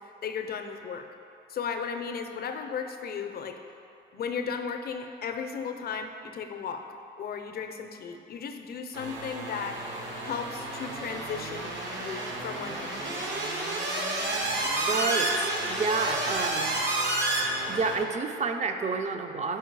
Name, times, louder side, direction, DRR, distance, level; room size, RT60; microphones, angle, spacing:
voice 1, 0.2-1.1 1.5-3.6 4.1-6.8 7.2-9.8 10.2-13.3, left 6 dB, 50° left, 6 dB, 0.5 m, -35 dB
sound 1, 8.9-18.0, right 2 dB, 70° right, 1.0 m, -30 dB
voice 2, 14.9-16.8 17.7-19.6, right 4 dB, 35° right, 6 dB, 0.4 m, -29 dB
4.6 x 4.4 x 4.6 m, 2.7 s
cardioid pair, 90°, 20 cm